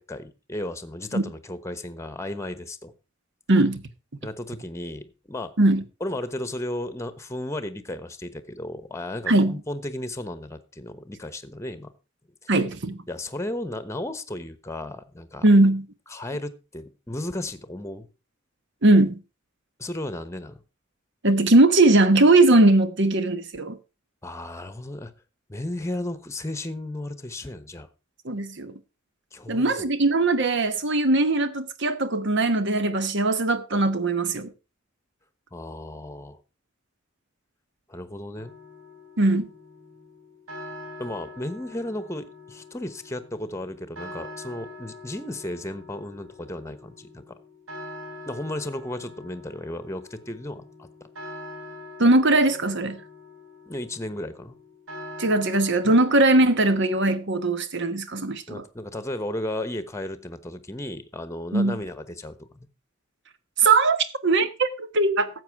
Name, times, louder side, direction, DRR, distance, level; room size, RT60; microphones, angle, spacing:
voice 1, 0.0-2.9 4.2-5.5 6.0-11.9 12.4-12.5 13.1-15.4 16.1-18.1 19.8-20.6 24.2-25.1 25.5-27.9 29.3-29.9 35.5-36.4 37.9-38.5 41.0-47.3 48.2-50.9 53.7-54.6 55.8-55.9 58.5-62.7, left 1 dB, 15° left, 1.1 m, -34 dB
voice 2, 3.5-3.8 5.6-5.8 9.3-9.6 12.5-13.0 15.4-15.9 18.8-19.2 21.2-23.8 28.2-28.8 29.5-34.5 39.2-39.5 52.0-53.0 55.2-58.6 61.5-61.8 63.6-64.0 64.2-65.3, right 2 dB, 65° right, 1.2 m, -20 dB
sound 1, 38.4-57.0, left 2 dB, 90° right, 4.0 m, -44 dB
13.0 x 8.0 x 4.7 m
head